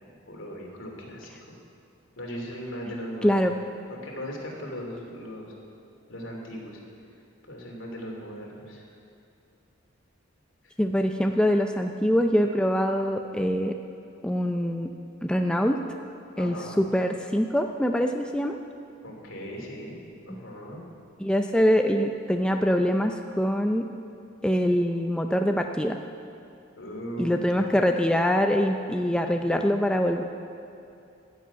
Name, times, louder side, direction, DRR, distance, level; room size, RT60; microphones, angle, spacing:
voice 1, 0.1-1.3 2.2-3.5 3.9-5.5 6.1-6.8 7.5-8.9 10.6-10.7 16.3-16.8 19.0-20.0 20.3-20.8 26.8-27.8, equal, 65° left, -1 dB, 3.1 m, -38 dB
voice 2, 3.2-3.5 10.8-13.7 14.2-14.9 15.2-15.8 16.4-18.6 21.2-23.8 24.4-26.0 27.2-30.2, equal, 5° left, 4 dB, 0.4 m, -24 dB
14.5 x 7.6 x 9.4 m, 2.7 s
head